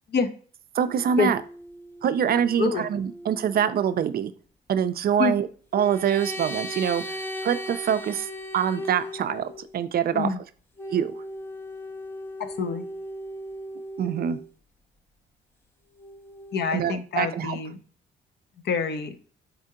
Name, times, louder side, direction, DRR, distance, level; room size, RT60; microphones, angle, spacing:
voice 1, 0.7-1.4 2.0-4.3 4.7-5.5 5.7-8.3 8.5-10.3 10.9-11.1 14.0-14.4 16.7-17.6, right 8 dB, 50° right, 11 dB, 0.4 m, -25 dB
sound 1, 0.9-3.7 5.7-9.7 10.8-14.5 16.0-16.7, equal, 10° left, 0.5 m, -38 dB
voice 2, 12.4-12.8 16.5-17.8 18.6-19.3, left 5 dB, 55° left, 8 dB, 0.7 m, -26 dB
4.3 x 2.7 x 3.6 m, 0.43 s
cardioid pair, 90°, 20 cm